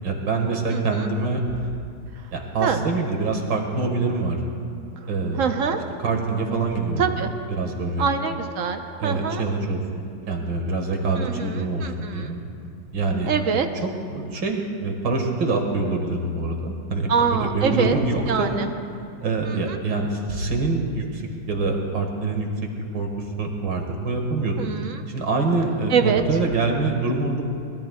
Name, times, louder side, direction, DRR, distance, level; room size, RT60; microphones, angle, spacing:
voice 1, 0.0-1.4 2.3-4.4 5.1-5.5 6.0-7.3 7.6-8.1 9.0-12.4 12.9-18.6 19.2-21.2 21.5-22.5 22.9-23.1 23.4-24.6 25.1-27.4, right 3 dB, 90° right, 2 dB, 2.4 m, -25 dB
voice 2, 0.7-1.1 2.6-2.8 5.4-5.8 7.0-7.3 8.0-9.4 11.2-12.3 13.2-13.7 17.1-18.0 18.3-18.7 19.5-19.8 24.6-25.0 25.9-26.2, right 6 dB, 55° right, 6 dB, 1.1 m, -24 dB
23.5 x 21.0 x 2.4 m, 2.6 s
omnidirectional pair, 1.9 m